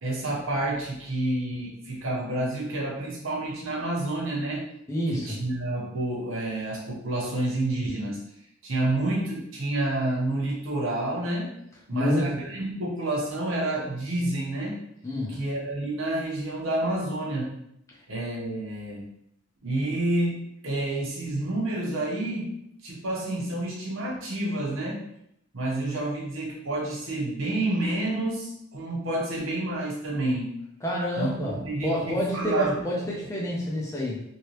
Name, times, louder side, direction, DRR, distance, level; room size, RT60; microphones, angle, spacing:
voice 1, 0.0-4.7 5.1-8.3 8.6-11.5 11.9-14.8 15.3-17.5 18.1-19.1 19.6-22.5 22.8-25.1 25.5-30.6 31.2-32.8, right 2 dB, 70° right, -3 dB, 1.0 m, -29 dB
voice 2, 4.9-5.4 11.9-12.4 15.0-15.4 30.8-34.2, equal, 15° left, -4 dB, 0.5 m, -28 dB
3.1 x 2.7 x 3.1 m, 0.76 s
head